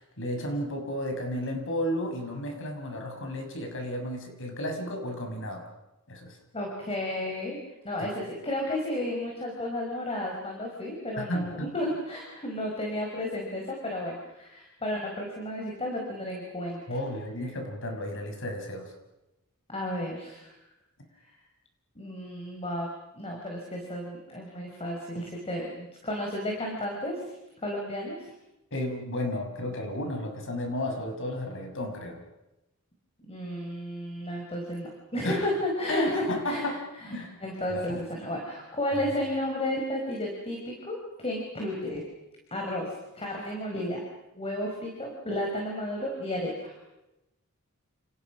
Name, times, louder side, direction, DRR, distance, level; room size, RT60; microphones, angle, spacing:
voice 1, 0.0-5.6 6.1-6.4 8.0-8.1 11.2-11.7 16.9-18.9 28.7-32.2 35.2-35.5 35.9-36.8 37.1-37.4 37.7-38.0, left 1 dB, 60° left, 4 dB, 6.3 m, -33 dB
voice 2, 6.5-7.6 7.8-17.0 19.7-20.5 21.2-21.3 22.0-22.9 23.1-27.3 27.6-28.3 33.3-36.6 37.0-42.0 42.5-44.0 44.3-46.7, left 1 dB, 25° left, 0 dB, 5.2 m, -33 dB
30.0 x 29.0 x 6.2 m, 0.97 s
head